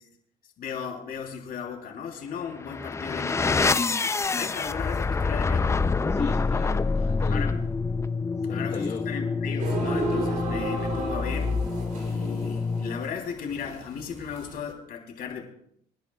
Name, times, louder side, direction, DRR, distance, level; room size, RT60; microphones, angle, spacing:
voice 1, 0.6-5.7 7.3-7.6 8.5-11.5 11.9-15.5, left 7 dB, 60° left, 2 dB, 3.2 m, -36 dB
sound 1, 2.5-13.2, left 4 dB, 15° left, 0.5 m, -27 dB
voice 2, 6.1-7.6 8.5-9.0, left 5 dB, 40° left, 2 dB, 1.2 m, -34 dB
sound 2, 9.6-14.7, right 4 dB, 50° right, 3.2 m, -34 dB
26.5 x 10.5 x 2.3 m, 0.68 s
cardioid pair, 110°, 17 cm